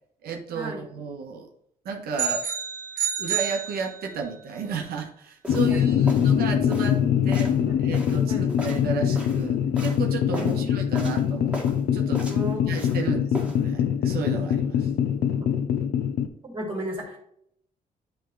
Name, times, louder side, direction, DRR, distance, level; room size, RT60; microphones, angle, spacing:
voice 1, 0.2-1.5 1.8-2.4 3.2-11.6 11.9-12.3 12.7-14.9, right 5 dB, 80° right, 2 dB, 1.3 m, -33 dB
sound 1, 2.2-4.3, right 8 dB, 60° right, 2.3 m, -29 dB
sound 2, 5.4-5.7 6.1-6.4 6.7-7.0 7.3-7.6 7.9-9.5 9.7-10.0 10.3-10.6 10.9-11.3 11.5-11.8 12.1-13.0 13.3-13.6, right 1 dB, 5° right, 1.9 m, -37 dB
sound 3, 5.5-16.3, left 8 dB, 75° left, 0.8 m, -23 dB
voice 2, 10.3-10.7 12.3-12.8 15.4-15.5 16.4-17.2, equal, 30° right, -3 dB, 2.8 m, -34 dB
10.0 x 3.6 x 4.0 m, 0.71 s
cardioid pair, 115°, 16 cm